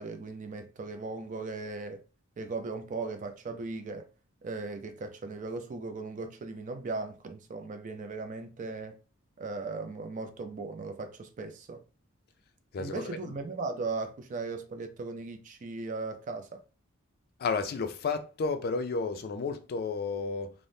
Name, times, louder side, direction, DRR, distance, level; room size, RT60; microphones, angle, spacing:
voice 1, 0.0-2.0 2.4-4.1 4.4-9.0 9.4-11.8 12.8-16.6, right 3 dB, 35° right, 0.3 m, -37 dB
voice 2, 12.7-13.3 17.4-20.5, left 4 dB, 45° left, 0.3 m, -32 dB
3.3 x 2.0 x 2.6 m
head